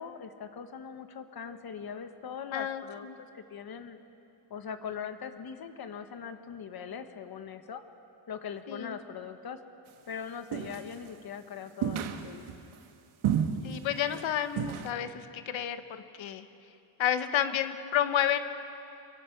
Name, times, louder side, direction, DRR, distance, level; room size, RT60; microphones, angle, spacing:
voice 1, 0.0-4.0 4.5-7.8 8.3-9.6 10.1-12.6, left 7 dB, 50° left, 8 dB, 1.4 m, -41 dB
voice 2, 2.5-3.2 8.7-8.9 13.6-16.5 17.0-18.4, left 10 dB, 70° left, 9 dB, 1.3 m, -30 dB
sound 1, 10.5-11.1 11.8-12.6 13.2-13.8 14.1-14.3 14.6-14.9, right 9 dB, 85° right, 1.5 m, -31 dB
25.5 x 23.0 x 6.0 m, 2.7 s
cardioid pair, 155°, 48 cm